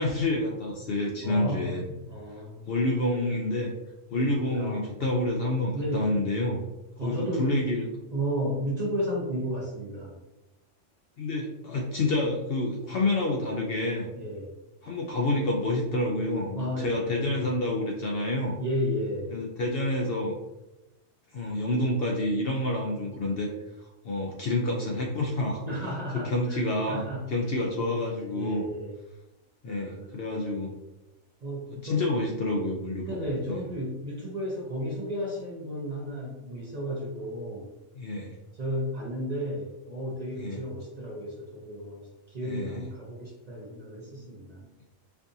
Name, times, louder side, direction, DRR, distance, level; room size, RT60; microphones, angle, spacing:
voice 1, 0.0-1.8 2.7-3.7 4.1-6.6 7.0-7.8 11.2-14.1 14.8-18.6 19.3-20.4 21.3-23.5 24.0-25.6 26.2-28.7 29.6-30.7 31.7-33.2 33.5-33.6 38.0-38.3 40.4-40.6 42.4-42.8, left 2 dB, 60° left, -1 dB, 0.7 m, -28 dB
voice 2, 1.2-2.7 4.1-4.8 5.7-6.1 7.0-7.5 8.1-10.2 14.1-14.5 16.5-17.5 18.6-19.3 25.6-27.3 27.8-28.9 29.6-30.1 31.4-32.1 33.1-37.7 38.5-44.7, equal, 40° right, -4 dB, 0.8 m, -33 dB
4.5 x 2.5 x 2.7 m, 0.97 s
omnidirectional pair, 1.3 m